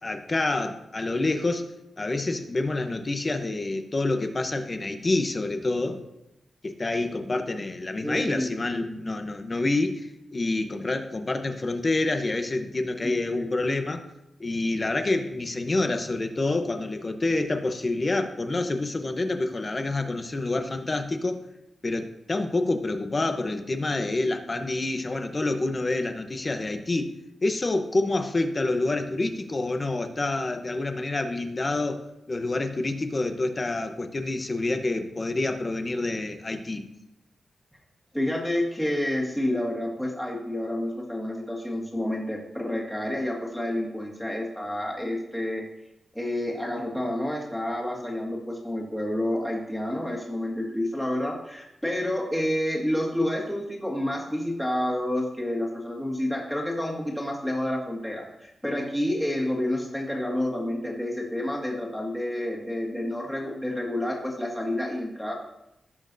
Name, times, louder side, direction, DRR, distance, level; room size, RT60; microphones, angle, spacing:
voice 1, 0.0-1.7 2.0-6.0 6.6-14.0 14.4-21.4 21.8-27.1 27.4-36.9, left 2 dB, 30° left, 7 dB, 0.8 m, -27 dB
voice 2, 8.0-9.2 13.0-13.5 38.1-45.6 46.1-65.3, left 1 dB, 5° left, -3 dB, 2.0 m, -29 dB
18.0 x 6.3 x 2.7 m, 0.89 s
wide cardioid pair, 140°, 0 cm